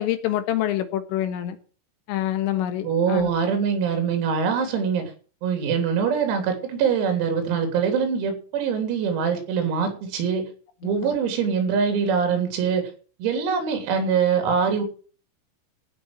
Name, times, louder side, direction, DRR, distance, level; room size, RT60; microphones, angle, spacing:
voice 1, 0.0-1.6 2.1-3.3 11.0-11.1, left 12 dB, 80° left, 10 dB, 3.9 m, -26 dB
voice 2, 2.8-5.1 5.4-10.4 10.8-12.9 13.2-14.8, right 6 dB, 85° right, 6 dB, 6.2 m, -23 dB
16.0 x 6.4 x 9.0 m, 0.39 s
omnidirectional pair, 6.0 m